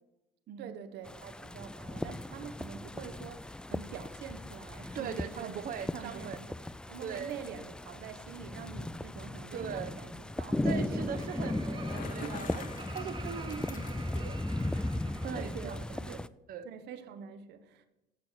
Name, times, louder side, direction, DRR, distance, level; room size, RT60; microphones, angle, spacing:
voice 1, 0.6-5.7 6.0-6.6 6.9-11.5 12.2-12.4 15.3-16.2 16.6-17.8, right 7 dB, 85° right, 1.2 m, -46 dB
sound 1, 1.0-16.3, left 1 dB, 5° left, 0.3 m, -37 dB
voice 2, 4.9-6.4 7.0-7.3 9.5-9.9 10.6-12.6 12.9-14.4 15.2-16.2 16.5-16.7, right 7 dB, 60° right, 1.0 m, -40 dB
Laughter, 10.8-15.9, right 4 dB, 30° right, 1.1 m, -49 dB
Bicycle, 11.6-14.4, left 7 dB, 50° left, 1.3 m, -47 dB
14.0 x 6.1 x 6.6 m
cardioid pair, 110°, 17 cm